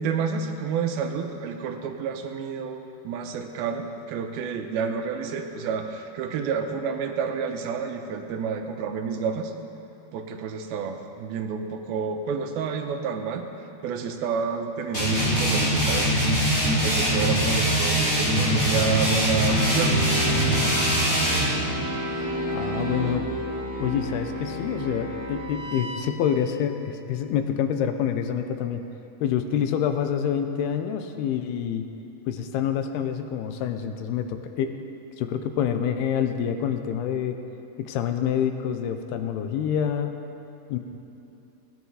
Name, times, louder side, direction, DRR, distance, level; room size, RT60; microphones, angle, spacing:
voice 1, 0.0-9.5 10.1-13.5 13.8-16.2 16.7-20.0, right 6 dB, 80° right, 5 dB, 2.6 m, -29 dB
sound 1, 14.9-21.5, right 1 dB, 15° left, 3.0 m, -22 dB
sound 2, 19.5-26.0, right 1 dB, 15° right, 0.9 m, -31 dB
voice 2, 22.5-23.2 23.8-28.8 29.2-31.8 32.3-34.7 35.2-37.4 37.8-40.2 40.7-40.8, left 8 dB, 80° left, 7 dB, 2.6 m, -27 dB
17.5 x 10.5 x 4.9 m, 2.9 s
omnidirectional pair, 4.7 m